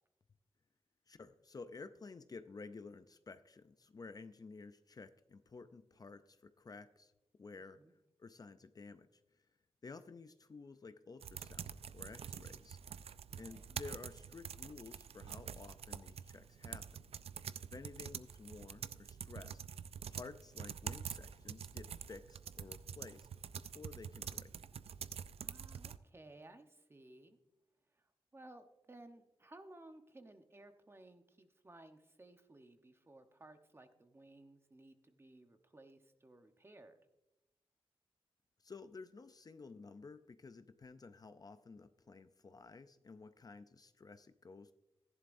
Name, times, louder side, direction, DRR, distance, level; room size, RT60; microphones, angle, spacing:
voice 1, 1.1-7.1 7.4-7.8 8.2-9.4 9.8-12.8 13.3-17.1 17.6-19.6 20.1-23.3 23.5-24.5 38.6-44.7, left 4 dB, 40° left, 11 dB, 0.5 m, -53 dB
sound 1, 11.2-26.0, right 7 dB, 80° right, 0.4 m, -47 dB
voice 2, 13.3-13.7 25.4-27.4 27.9-28.1 28.3-37.0, right 2 dB, 25° right, 7 dB, 1.0 m, -58 dB
15.0 x 11.0 x 2.6 m, 0.96 s
wide cardioid pair, 120°, 10 cm